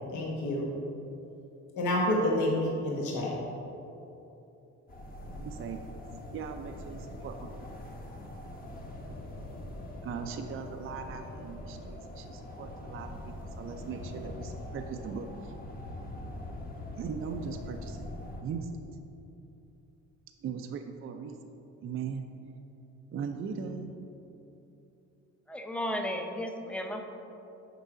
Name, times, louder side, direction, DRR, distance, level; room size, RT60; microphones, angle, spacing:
voice 1, 0.1-0.7 1.7-3.3, left 1 dB, 75° left, -3 dB, 1.2 m, -28 dB
sound 1, 4.9-18.4, left 1 dB, 30° left, 1.0 m, -42 dB
voice 2, 5.4-5.8 6.3-7.7 10.0-15.5 17.0-18.1 18.4-18.8 20.4-21.4 21.8-22.2 23.1-24.1, right 6 dB, 45° right, 5 dB, 0.4 m, -39 dB
voice 3, 25.5-27.0, left 1 dB, 5° left, 3 dB, 0.5 m, -34 dB
6.6 x 4.7 x 4.8 m, 2.9 s
cardioid pair, 120°, 30 cm